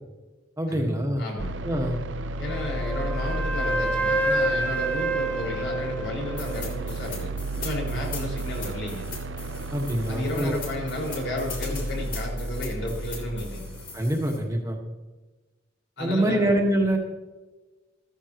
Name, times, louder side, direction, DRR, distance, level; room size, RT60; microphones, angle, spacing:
voice 1, 0.6-1.2 1.6-2.0 9.7-10.6 13.9-14.8 16.0-17.0, right 1 dB, 15° right, 1 dB, 1.5 m, -25 dB
voice 2, 1.2-1.5 2.4-7.3 7.6-9.0 10.1-13.7 16.0-16.5, left 1 dB, 75° left, -3 dB, 5.1 m, -32 dB
sound 1, 1.4-14.5, right 2 dB, 70° right, 0.6 m, -33 dB
Wind instrument woodwind instrument, 2.4-6.7, right 2 dB, 10° left, 1.2 m, -28 dB
sound 2, 6.4-14.4, left 5 dB, 50° left, 3.7 m, -41 dB
15.0 x 14.5 x 3.0 m, 1.2 s
head